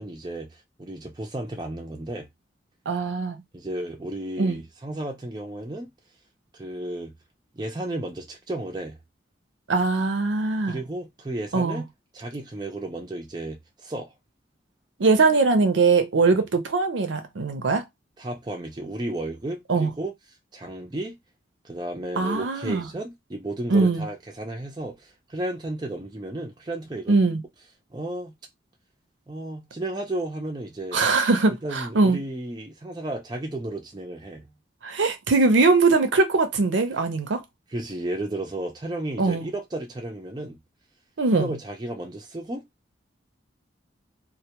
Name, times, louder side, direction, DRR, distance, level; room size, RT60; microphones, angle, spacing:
voice 1, 0.0-2.3 3.5-5.9 6.5-7.1 7.5-9.0 10.7-11.9 12.1-14.1 16.3-16.4 18.2-20.1 20.5-21.2 21.6-27.1 27.9-28.3 29.3-31.0 31.6-34.5 37.7-40.6 41.3-42.6, right 1 dB, 20° right, 0.4 m, -33 dB
voice 2, 2.9-3.4 4.4-4.6 9.7-10.8 11.5-11.8 15.0-17.8 19.7-19.9 22.2-22.9 23.7-24.0 27.1-27.4 30.9-32.2 34.8-37.4 39.2-39.5 41.2-41.5, right 3 dB, 75° right, 0.6 m, -21 dB
2.1 x 2.1 x 2.8 m
head